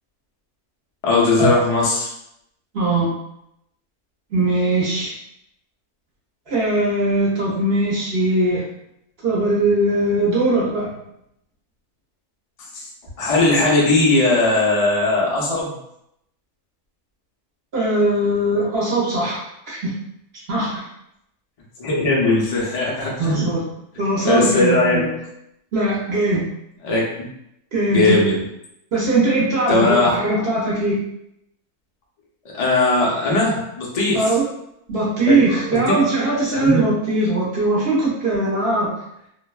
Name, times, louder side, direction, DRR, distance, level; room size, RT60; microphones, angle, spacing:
voice 1, 1.0-2.1 12.7-12.8 13.2-15.8 21.8-23.5 24.2-25.2 26.8-27.3 27.9-28.4 29.7-30.1 32.5-34.3 35.5-35.8 36.6-36.8, left 2 dB, 80° left, -4 dB, 0.3 m, -19 dB
voice 2, 2.7-3.2 4.3-5.1 6.5-8.6 9.2-10.9 17.7-19.9 20.5-20.9 23.2-23.7 24.0-25.1 25.7-26.5 27.7-28.2 28.9-31.0 34.1-34.5 34.9-38.9, right 2 dB, 55° right, -6 dB, 0.7 m, -20 dB
2.5 x 2.1 x 2.3 m, 0.79 s
omnidirectional pair, 1.6 m